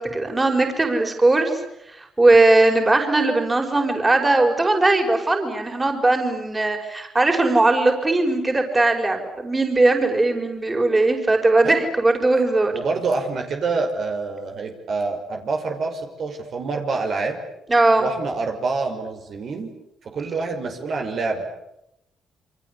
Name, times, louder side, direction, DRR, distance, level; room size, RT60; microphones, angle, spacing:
voice 1, 0.0-1.6 2.0-12.7 17.7-18.0, right 2 dB, 20° right, 4 dB, 5.5 m, -19 dB
voice 2, 12.7-17.4 18.0-19.7 20.0-21.5, right 4 dB, 60° right, 3 dB, 5.4 m, -26 dB
28.5 x 24.5 x 8.5 m, 0.82 s
cardioid pair, 90°, 0 cm